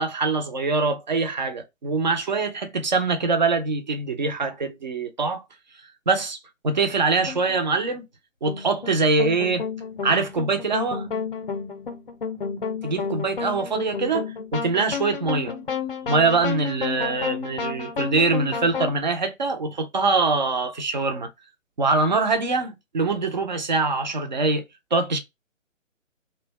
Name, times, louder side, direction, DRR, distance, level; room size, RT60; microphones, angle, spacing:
voice 1, 0.0-5.4 6.1-6.4 6.6-8.0 8.4-9.6 10.0-11.1 12.8-15.6 16.1-21.3 21.8-24.6 24.9-25.2, right 3 dB, 35° right, 0.4 m, -23 dB
sound 1, 7.3-7.6 8.5-18.9, left 5 dB, 45° left, 0.4 m, -31 dB
2.6 x 2.1 x 3.0 m
figure-of-eight pair, 145°, 40 cm